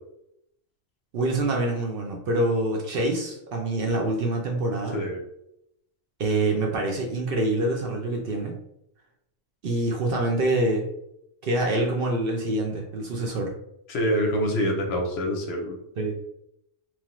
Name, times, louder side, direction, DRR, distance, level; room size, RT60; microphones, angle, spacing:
voice 1, 1.1-5.0 6.2-8.5 9.6-10.8 11.4-13.5 16.0-16.1, right 2 dB, 60° right, 1 dB, 0.7 m, -25 dB
voice 2, 13.9-15.7, equal, 70° left, 2 dB, 0.8 m, -25 dB
3.0 x 2.0 x 2.9 m, 0.78 s
omnidirectional pair, 1.2 m